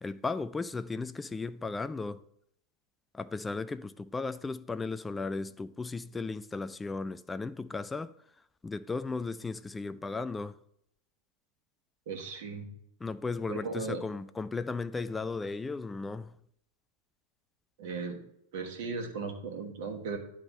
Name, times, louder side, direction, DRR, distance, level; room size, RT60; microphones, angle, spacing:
voice 1, 0.0-2.2 3.1-8.1 8.6-10.6 13.0-16.3, left 3 dB, 10° left, 0.3 m, -35 dB
voice 2, 12.1-12.7 13.5-14.0 17.8-18.2 18.5-20.2, right 4 dB, 50° right, 1.3 m, -36 dB
10.0 x 3.6 x 5.4 m
figure-of-eight pair, 90°, 0 cm